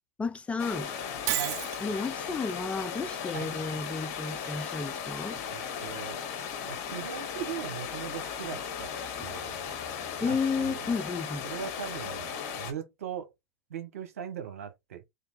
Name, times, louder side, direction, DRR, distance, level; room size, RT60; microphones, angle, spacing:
voice 1, 0.2-0.9 1.3-1.4 1.8-5.4 9.2-9.3 10.2-11.5, left 4 dB, 15° left, 0.4 m, -32 dB
sound 1, 0.6-12.7, left 7 dB, 50° left, 1.1 m, -37 dB
Shatter, 1.3-1.8, right 15 dB, 45° right, 0.4 m, -30 dB
voice 2, 5.5-6.2 6.7-8.9 9.2-9.7 10.3-10.8 11.4-12.3 12.6-13.3 13.7-15.0, right 8 dB, 75° right, 1.0 m, -39 dB
3.3 x 2.7 x 4.0 m
hypercardioid pair, 90°, 8 cm